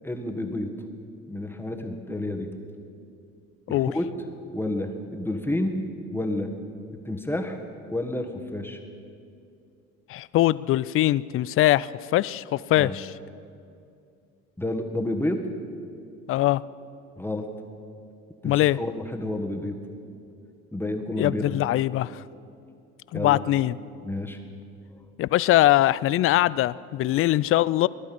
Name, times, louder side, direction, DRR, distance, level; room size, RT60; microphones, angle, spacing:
voice 1, 0.0-0.7 1.3-2.5 3.7-4.1 4.5-5.8 6.1-6.5 7.0-7.6 7.9-8.8 12.8-12.9 14.6-15.4 17.2-17.5 18.4-19.7 20.7-21.6 23.1-23.4 24.0-24.4, left 1 dB, 5° left, 4 dB, 1.7 m, -30 dB
voice 2, 10.1-13.1 16.3-16.6 18.4-18.8 21.2-22.2 23.1-23.8 25.2-27.9, left 15 dB, 35° left, 19 dB, 0.4 m, -22 dB
18.5 x 12.0 x 6.1 m, 2.5 s
hypercardioid pair, 70°, 38 cm